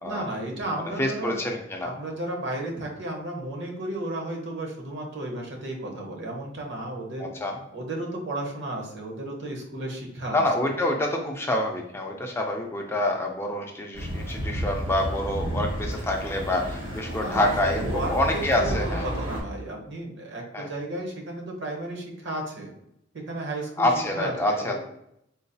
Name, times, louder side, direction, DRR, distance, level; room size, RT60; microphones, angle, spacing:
voice 1, 0.0-1.4 1.8-7.3 7.7-10.7 17.2-22.7 23.1-23.9 24.1-24.7, right 1 dB, 65° right, 0 dB, 0.8 m, -33 dB
voice 2, 1.0-1.9 7.2-7.6 10.3-19.1 20.5-20.7 23.8-24.7, left 1 dB, 15° left, 1 dB, 0.3 m, -27 dB
sound 1, 13.9-19.4, equal, 80° right, 1.2 m, -31 dB
3.8 x 2.3 x 2.6 m, 0.78 s
head